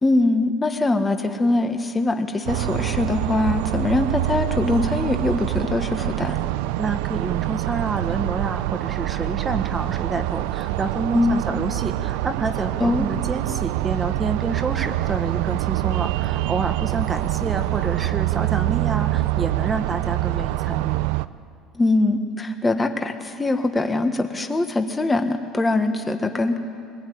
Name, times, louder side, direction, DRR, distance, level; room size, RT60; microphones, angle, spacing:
voice 1, 0.0-6.4 11.1-11.4 12.8-13.1 21.7-26.6, left 2 dB, 10° left, 6 dB, 1.4 m, -22 dB
sound 1, 2.5-21.3, right 16 dB, 85° right, 0.5 m, -25 dB
voice 2, 6.8-21.1, right 4 dB, 15° right, 8 dB, 1.1 m, -28 dB
23.5 x 20.5 x 9.3 m, 2.6 s
cardioid pair, 160°, 0 cm